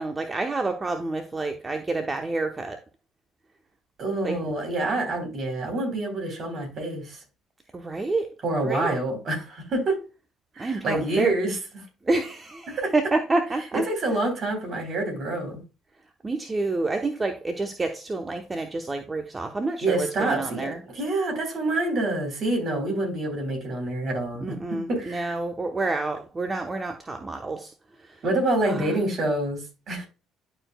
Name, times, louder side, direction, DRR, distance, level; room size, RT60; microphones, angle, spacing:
voice 1, 0.0-2.8 4.2-4.5 7.7-8.3 8.6-8.9 10.6-11.4 12.0-13.9 16.2-20.8 24.4-27.7 28.0-28.2 28.6-29.0, right 3 dB, 25° right, 0.9 m, -28 dB
voice 2, 4.0-7.2 8.4-10.0 10.6-11.6 12.7-12.9 13.9-15.6 19.8-24.6 24.9-25.3 28.2-29.6 29.9-30.1, right 2 dB, 50° right, 3.7 m, -27 dB
11.5 x 4.6 x 2.2 m
hypercardioid pair, 60°, 0 cm